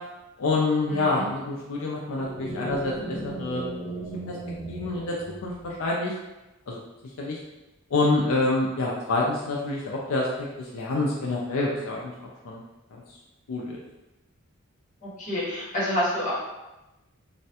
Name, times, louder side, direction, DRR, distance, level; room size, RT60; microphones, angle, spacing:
voice 1, 0.4-3.7 4.3-4.4 4.7-5.2 5.4-6.1 6.7-6.8 7.2-7.4 7.9-12.6 13.5-13.8, left 2 dB, 75° left, -3 dB, 0.4 m, -27 dB
voice 2, 0.9-1.3 15.0-16.3, equal, 35° left, -7 dB, 0.9 m, -28 dB
sound 1, 2.1-5.8, right 2 dB, ahead, 0.7 m, -36 dB
3.2 x 2.1 x 2.7 m, 1.0 s
head